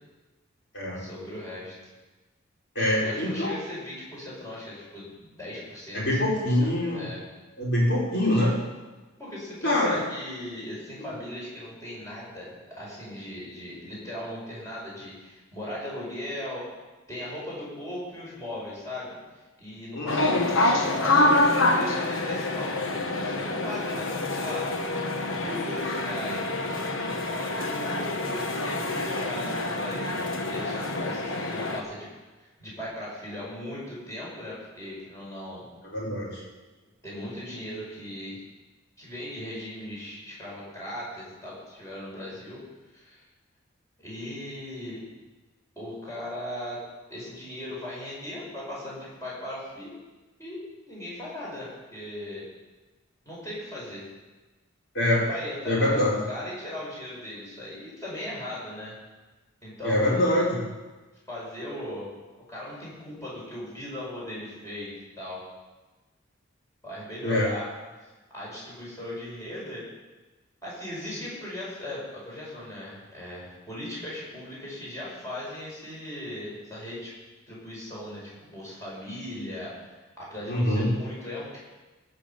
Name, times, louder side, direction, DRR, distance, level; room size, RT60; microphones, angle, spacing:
voice 1, 1.0-1.7 3.0-7.2 9.2-16.7 17.1-19.2 19.6-24.7 25.3-26.5 27.1-32.1 32.4-35.7 37.0-38.4 39.0-42.6 42.9-43.2 44.0-45.0 45.8-46.8 47.1-49.9 50.4-52.4 53.3-54.0 55.1-59.0 59.6-60.3 61.3-62.1 62.5-65.4 66.8-67.7 68.0-69.8 70.6-77.1 77.5-81.6, left 1 dB, 15° left, -6 dB, 5.3 m, -38 dB
voice 2, 2.7-3.5 5.9-7.0 7.6-8.5 9.6-10.0 11.0-11.1 19.9-20.3 35.9-36.4 54.9-55.3 55.6-56.2 59.8-60.6 67.2-67.5 80.5-80.9, left 1 dB, 55° left, -6 dB, 5.1 m, -24 dB
sound 1, 20.1-31.8, left 2 dB, 70° left, 1.3 m, -26 dB
17.0 x 6.1 x 7.1 m, 1.2 s
head